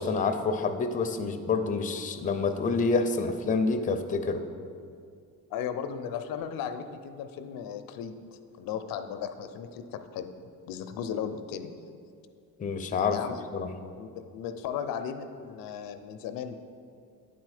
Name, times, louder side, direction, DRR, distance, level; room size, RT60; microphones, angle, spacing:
voice 1, 0.0-4.4 12.6-13.2 13.5-13.8, left 4 dB, 25° left, 7 dB, 0.5 m, -27 dB
voice 2, 5.5-8.2 8.6-11.7 13.1-13.4 14.0-16.6, left 8 dB, 90° left, 9 dB, 0.5 m, -36 dB
8.9 x 4.2 x 4.8 m, 2.3 s
cardioid pair, 105°, 34 cm